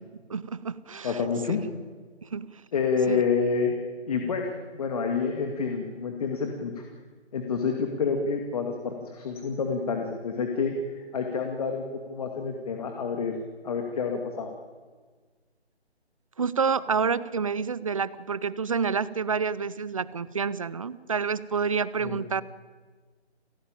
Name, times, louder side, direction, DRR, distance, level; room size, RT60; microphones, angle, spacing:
voice 1, 0.3-1.2 1.5-1.6 2.3-2.5 3.1-3.2 16.4-22.4, right 5 dB, 30° right, 18 dB, 0.7 m, -28 dB
voice 2, 1.0-1.6 2.7-3.7 4.1-6.8 7.3-13.4 13.6-14.5 22.0-22.2, left 5 dB, 35° left, 3 dB, 2.4 m, -28 dB
30.0 x 16.5 x 9.0 m, 1.5 s
figure-of-eight pair, 160°, 33 cm